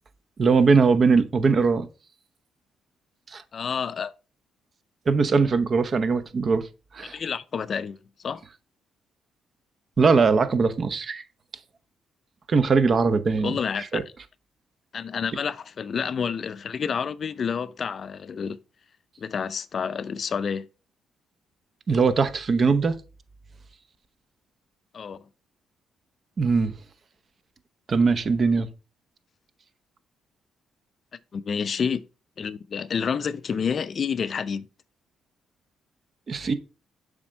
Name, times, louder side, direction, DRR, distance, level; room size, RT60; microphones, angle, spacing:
voice 1, 0.4-1.9 3.3-3.4 5.1-6.6 6.9-7.2 10.0-11.2 12.5-13.6 13.9-14.0 21.9-22.9 26.4-26.7 27.9-28.7 36.3-36.5, right 4 dB, 45° right, 0.9 m, -21 dB
voice 2, 3.5-4.1 7.0-8.4 13.4-14.0 14.9-18.6 19.2-20.7 24.9-25.3 31.3-32.0 32.4-34.7, left 6 dB, 50° left, 0.5 m, -29 dB
7.2 x 5.2 x 4.5 m
cardioid pair, 90°, 0 cm